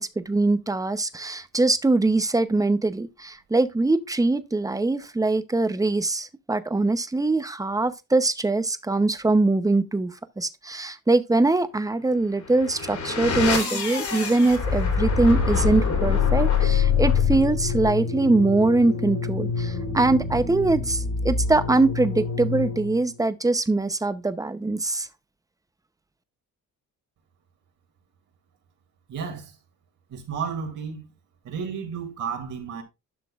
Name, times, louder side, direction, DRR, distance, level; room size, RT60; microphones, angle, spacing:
voice 1, 0.0-25.1, right 2 dB, 10° right, 0.7 m, -23 dB
sound 1, 12.3-23.1, left 6 dB, 60° left, 3.5 m, -25 dB
voice 2, 29.1-29.5 30.1-31.1 31.4-32.8, right 6 dB, 70° right, 2.7 m, -32 dB
11.0 x 5.9 x 2.4 m
cardioid pair, 110°, 32 cm